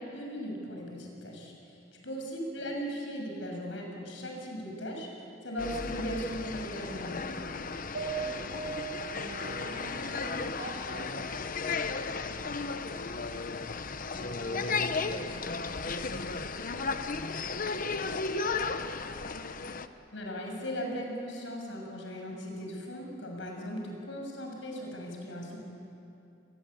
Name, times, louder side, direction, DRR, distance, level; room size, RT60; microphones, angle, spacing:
voice 1, 0.1-1.5 2.0-5.1 5.4-7.2 20.1-25.7, equal, 75° left, 1 dB, 6.9 m, -38 dB
sound 1, 5.6-19.9, left 4 dB, 50° left, 1.0 m, -34 dB
sound 2, 7.9-11.4 11.7-12.8, right 6 dB, 90° right, 5.7 m, -42 dB
voice 2, 8.2-18.9 23.4-23.7, right 1 dB, 50° right, -3 dB, 5.1 m, -49 dB
30.0 x 21.5 x 8.7 m, 2.7 s
head